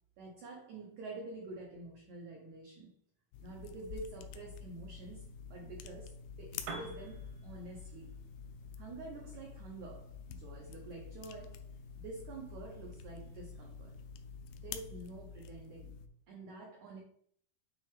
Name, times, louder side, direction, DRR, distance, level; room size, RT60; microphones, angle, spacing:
voice 1, 0.2-2.9 3.4-8.1 8.8-11.7 12.0-13.9 14.5-16.0 16.3-17.0, right 3 dB, 90° right, -1 dB, 1.6 m, -48 dB
sound 1, 3.3-16.1, left 6 dB, 85° left, 2.1 m, -48 dB
Piano, 6.5-14.4, right 3 dB, 70° right, 2.0 m, -54 dB
8.9 x 3.2 x 3.4 m, 0.62 s
omnidirectional pair, 4.7 m